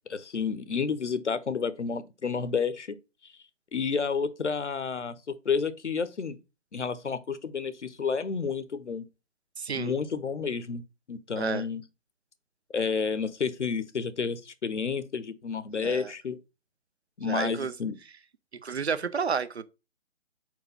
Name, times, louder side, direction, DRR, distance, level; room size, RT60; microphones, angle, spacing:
voice 1, 0.1-3.0 3.7-5.2 5.4-6.4 6.7-9.0 9.7-10.8 11.1-11.8 12.7-16.4 17.2-18.0, left 5 dB, 70° left, 0.9 m, -30 dB
voice 2, 9.6-9.9 11.4-11.6 15.8-16.1 17.2-17.7 18.6-19.6, right 6 dB, 60° right, 0.7 m, -31 dB
4.7 x 4.7 x 5.3 m
figure-of-eight pair, 145°, 37 cm